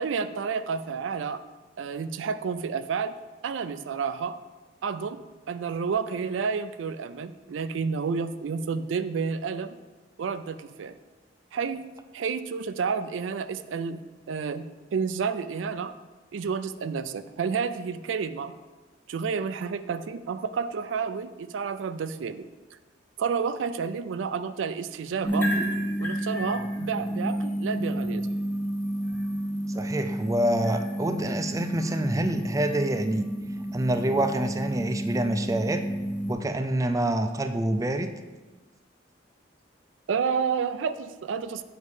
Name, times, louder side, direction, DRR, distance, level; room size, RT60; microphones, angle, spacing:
voice 1, 0.0-1.4 1.8-3.2 3.4-4.4 4.8-9.8 10.2-11.0 11.5-11.9 12.1-14.0 14.3-15.9 16.3-18.5 19.1-22.5 23.2-25.6 26.0-28.3 40.1-41.6, right 5 dB, 85° right, 12 dB, 0.4 m, -30 dB
sound 1, 25.2-36.3, right 1 dB, 10° left, 1.2 m, -30 dB
voice 2, 29.7-33.3 33.7-35.8 36.3-38.1, right 1 dB, 20° right, 7 dB, 0.4 m, -26 dB
7.0 x 5.4 x 4.8 m, 1.2 s
head